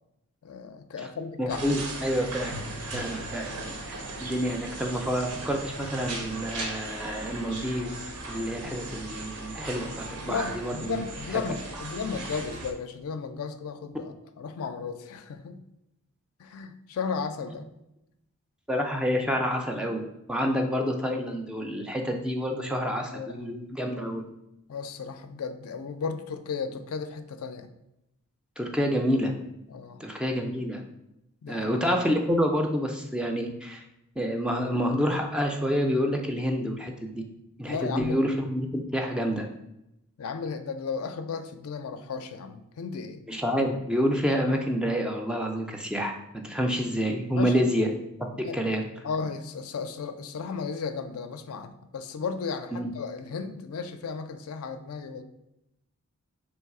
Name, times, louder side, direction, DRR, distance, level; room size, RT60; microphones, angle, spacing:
voice 1, 0.4-1.6 10.2-15.6 16.4-17.6 23.1-23.5 24.7-27.7 29.7-30.0 31.4-31.8 37.7-38.2 40.2-43.2 47.4-47.6 48.4-48.6 49.0-55.2, left 5 dB, 70° left, 9 dB, 0.4 m, -34 dB
voice 2, 1.4-2.6 2.9-3.5 3.9-11.0 11.3-11.4 18.7-24.2 28.6-29.3 30.0-30.8 31.5-33.8 34.2-37.2 37.6-39.5 43.3-47.9 48.4-48.8 52.7-52.9, equal, 5° right, 3 dB, 0.3 m, -28 dB
sound 1, 1.5-12.7, right 2 dB, 85° right, 0.8 m, -37 dB
3.2 x 3.1 x 4.7 m, 0.87 s
head